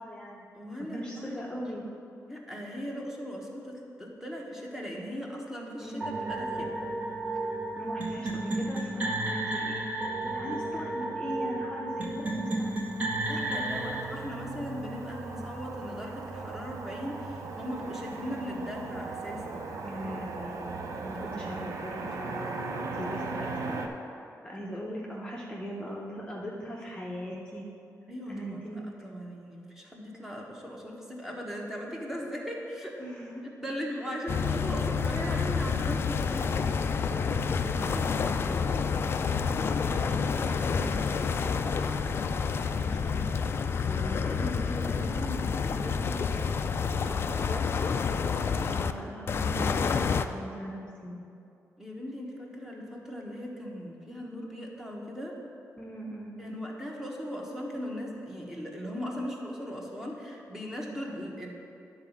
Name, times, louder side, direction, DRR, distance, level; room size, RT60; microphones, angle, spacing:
voice 1, 0.0-0.5 0.9-1.8 5.8-6.3 7.3-9.9 10.2-13.0 13.3-13.9 14.4-14.5 19.8-23.8 24.1-27.7 28.3-28.9 33.0-33.4 34.0-34.1 37.1-41.6 42.1-42.3 42.7-47.6 48.1-51.3 55.8-56.6, equal, 15° left, -4 dB, 0.8 m, -40 dB
voice 2, 0.5-1.4 2.3-6.7 13.1-19.7 21.3-21.4 24.5-24.7 28.1-33.0 33.6-36.6 51.8-55.4 56.4-61.5, equal, 5° right, -2 dB, 1.1 m, -38 dB
sound 1, 6.0-14.0, right 2 dB, 25° right, 0.8 m, -32 dB
Motor vehicle (road), 11.9-23.9, right 3 dB, 65° right, 0.7 m, -38 dB
sound 2, 34.3-48.9 49.3-50.3, left 5 dB, 45° left, 0.3 m, -29 dB
10.5 x 4.0 x 7.1 m, 2.6 s
wide cardioid pair, 155°, 6 cm